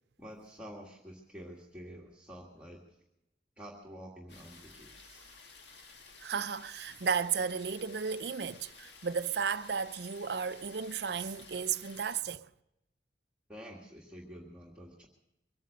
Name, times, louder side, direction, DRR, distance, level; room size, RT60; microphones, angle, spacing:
voice 1, 0.2-2.8 3.6-5.3 13.5-15.1, equal, 5° right, 1.7 m, -48 dB
sound 1, 4.3-12.2, left 4 dB, 70° left, 1.7 m, -54 dB
voice 2, 6.2-12.5, right 6 dB, 60° right, 0.5 m, -34 dB
23.5 x 9.2 x 6.6 m
head